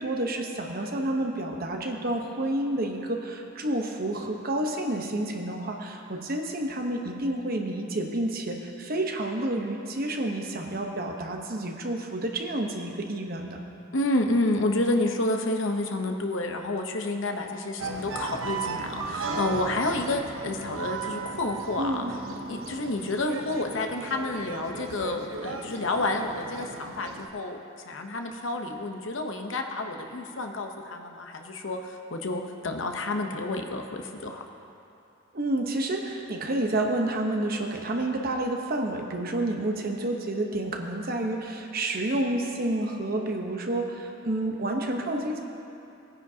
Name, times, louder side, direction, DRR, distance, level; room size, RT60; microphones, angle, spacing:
voice 1, 0.0-13.6 21.8-22.1 35.3-45.4, right 1 dB, 45° right, 2 dB, 1.0 m, -29 dB
voice 2, 13.9-22.1 22.5-27.6 27.8-34.4, left 2 dB, 65° left, 4 dB, 0.9 m, -29 dB
sound 1, 17.8-27.3, right 4 dB, 75° right, 0.8 m, -36 dB
19.5 x 9.8 x 2.8 m, 2.7 s
head